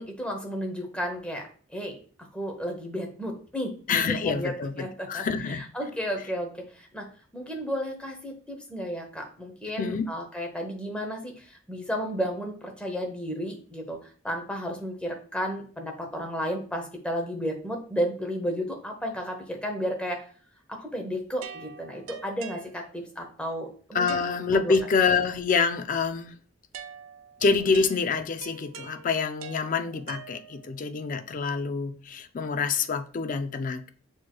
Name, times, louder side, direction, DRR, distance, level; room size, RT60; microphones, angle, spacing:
voice 1, 0.0-1.9 2.3-4.5 4.8-7.1 7.3-20.2 20.7-24.2 24.5-24.7, equal, 5° left, 2 dB, 0.8 m, -33 dB
voice 2, 3.9-5.7 9.8-10.1 23.9-26.4 27.4-33.9, left 5 dB, 40° left, 9 dB, 0.4 m, -26 dB
sound 1, 21.4-23.2 24.1-25.5 26.7-30.8, right 7 dB, 75° right, 0.5 m, -45 dB
6.2 x 3.0 x 2.2 m, 0.43 s
head